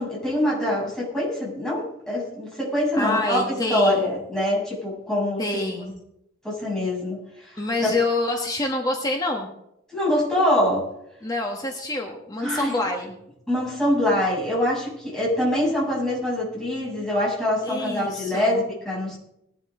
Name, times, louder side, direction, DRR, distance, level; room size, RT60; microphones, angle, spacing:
voice 1, 0.0-3.4 3.7-5.4 6.4-7.9 9.9-10.9 12.4-12.7 13.5-19.2, left 1 dB, 5° left, -6 dB, 7.4 m, -24 dB
voice 2, 2.9-4.1 5.4-5.9 7.6-9.5 11.2-13.1 17.6-18.6, left 2 dB, 20° left, 1 dB, 1.4 m, -27 dB
19.0 x 12.0 x 3.8 m, 0.79 s
head